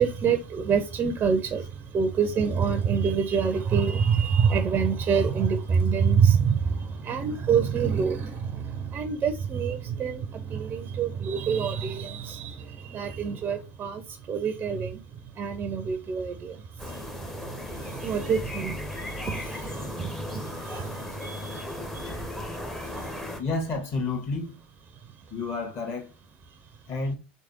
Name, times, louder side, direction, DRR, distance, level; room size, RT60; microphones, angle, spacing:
voice 1, 0.0-15.0 15.4-22.2 22.8-23.1, right 6 dB, 30° right, 0.5 m, -27 dB
sound 1, 16.8-23.4, left 1 dB, 5° left, 0.6 m, -36 dB
voice 2, 23.4-24.6 25.3-26.1 26.9-27.1, left 3 dB, 40° left, 1.4 m, -30 dB
3.3 x 3.2 x 2.7 m
hypercardioid pair, 85°, 6 cm